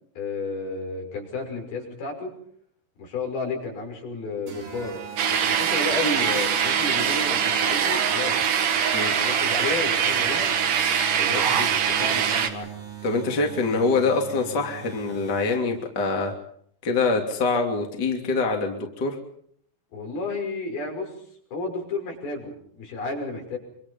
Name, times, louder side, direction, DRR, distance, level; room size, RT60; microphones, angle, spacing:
voice 1, 0.2-2.3 3.0-5.0 5.3-8.3 9.0-10.5 11.2-12.7 19.9-21.1 21.5-23.6, left 3 dB, 70° left, 2 dB, 7.5 m, -32 dB
sound 1, 4.5-15.9, right 8 dB, 75° right, 6.5 m, -41 dB
sound 2, 5.2-12.5, right 7 dB, 60° right, 3.1 m, -23 dB
voice 2, 13.0-16.3 16.8-19.2, left 3 dB, 30° left, 2 dB, 3.1 m, -24 dB
25.5 x 25.5 x 5.5 m, 0.65 s
omnidirectional pair, 4.7 m